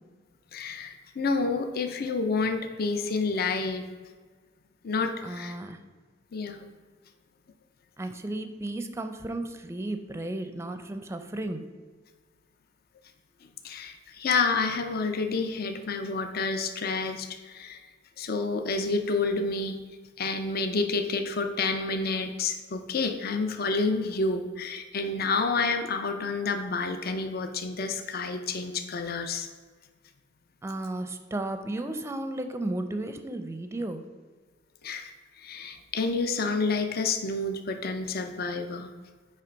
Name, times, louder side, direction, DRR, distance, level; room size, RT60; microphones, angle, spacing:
voice 1, 0.5-3.9 4.8-5.6 6.3-6.6 13.6-17.8 18.2-19.8 20.2-29.5 34.8-38.9, left 3 dB, 55° left, 6 dB, 0.6 m, -29 dB
voice 2, 5.2-5.8 8.0-11.7 30.6-34.0, right 1 dB, 15° right, 8 dB, 0.5 m, -34 dB
9.0 x 3.3 x 5.1 m, 1.4 s
head